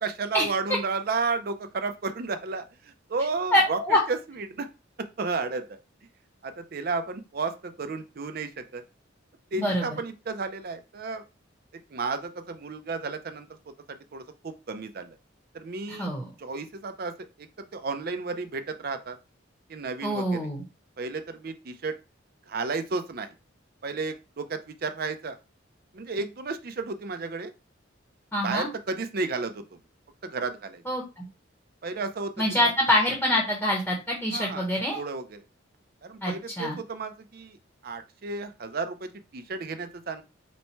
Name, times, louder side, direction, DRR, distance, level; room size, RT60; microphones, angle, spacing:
voice 1, 0.0-4.7 5.2-5.8 6.4-8.8 9.5-11.2 11.9-13.5 13.9-15.2 15.5-16.1 16.4-19.2 19.7-20.5 21.0-21.9 22.5-23.3 23.8-25.4 25.9-27.5 28.4-29.8 30.2-30.8 31.8-32.7 34.3-35.4 36.0-37.6 37.8-40.2, right 4 dB, 50° right, 9 dB, 0.5 m, -33 dB
voice 2, 3.5-4.0 9.6-9.9 16.0-16.2 20.0-20.6 28.3-28.7 30.9-31.0 32.4-35.0 36.2-36.8, left 1 dB, 5° left, -1 dB, 0.9 m, -25 dB
4.1 x 2.2 x 4.5 m, 0.28 s
head